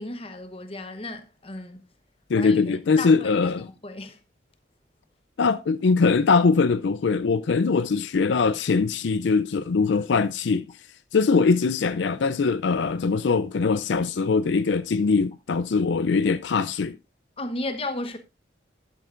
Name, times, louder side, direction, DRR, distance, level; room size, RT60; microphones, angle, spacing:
voice 1, 0.0-1.8 2.3-4.2 9.8-10.6 17.4-18.2, left 2 dB, 30° left, 0.9 m, -35 dB
voice 2, 2.3-3.7 5.4-10.7 11.1-17.0, left 4 dB, 75° left, 0.4 m, -22 dB
11.5 x 7.6 x 2.5 m
head